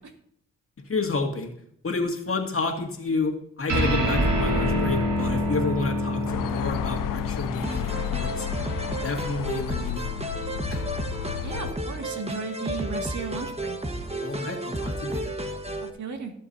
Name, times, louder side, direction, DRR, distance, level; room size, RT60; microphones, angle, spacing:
voice 1, 0.9-1.5 1.8-8.5 9.0-10.2 10.7-10.8 14.2-15.3, left 3 dB, 45° left, 3 dB, 2.3 m, -30 dB
sound 1, 3.7-10.5, equal, 80° right, 3.2 m, -27 dB
sound 2, 6.3-11.7, left 11 dB, 90° left, 0.5 m, -32 dB
sound 3, 7.6-15.9, right 1 dB, 20° right, 1.4 m, -32 dB
voice 2, 11.4-13.8 15.8-16.3, right 5 dB, 65° right, 4 dB, 2.2 m, -35 dB
19.0 x 7.6 x 2.8 m, 0.70 s
cardioid pair, 55°, 32 cm